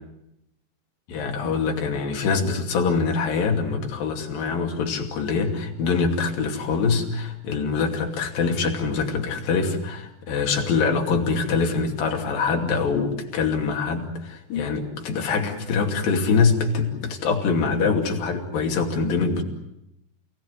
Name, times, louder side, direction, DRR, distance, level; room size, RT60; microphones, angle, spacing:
voice 1, 1.1-19.4, left 5 dB, 70° left, 2 dB, 4.3 m, -24 dB
29.0 x 18.0 x 9.4 m, 0.85 s
omnidirectional pair, 4.3 m